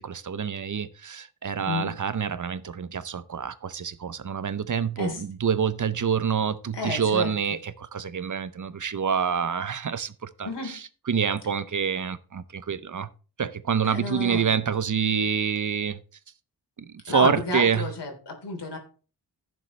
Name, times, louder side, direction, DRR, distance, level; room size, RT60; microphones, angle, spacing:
voice 1, 0.0-10.8 11.1-13.1 13.4-16.0 16.8-17.9, right 7 dB, 50° right, 0.7 m, -27 dB
voice 2, 1.6-1.9 5.0-5.2 6.7-7.3 10.4-10.7 13.8-14.5 17.1-18.8, left 3 dB, 85° left, 3.4 m, -31 dB
15.5 x 6.9 x 3.2 m
wide cardioid pair, 115°, 41 cm